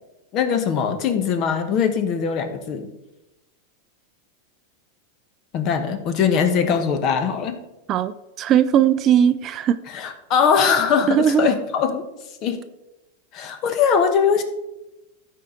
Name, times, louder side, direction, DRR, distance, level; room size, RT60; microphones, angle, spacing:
voice 1, 0.3-2.9 5.5-7.6 9.9-12.0 12.4-12.6 13.3-14.4, left 6 dB, 40° left, 8 dB, 1.0 m, -21 dB
voice 2, 7.9-9.8 11.1-11.5, right 9 dB, 35° right, 13 dB, 0.4 m, -18 dB
12.5 x 4.7 x 3.8 m, 0.97 s
supercardioid pair, 130°, 0 cm